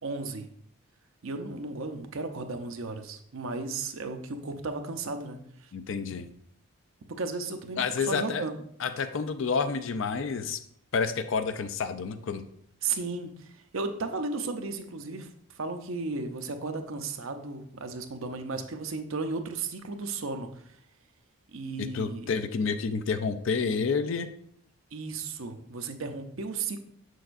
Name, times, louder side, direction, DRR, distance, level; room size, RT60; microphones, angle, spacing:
voice 1, 0.0-0.5 1.2-5.7 7.1-8.5 12.8-20.8 21.5-22.3 24.9-26.8, right 3 dB, 70° right, 6 dB, 0.7 m, -35 dB
voice 2, 5.7-6.3 7.8-8.4 8.8-10.6 10.9-12.4 21.8-24.3, left 5 dB, 60° left, 10 dB, 0.4 m, -29 dB
6.9 x 6.4 x 2.6 m, 0.69 s
head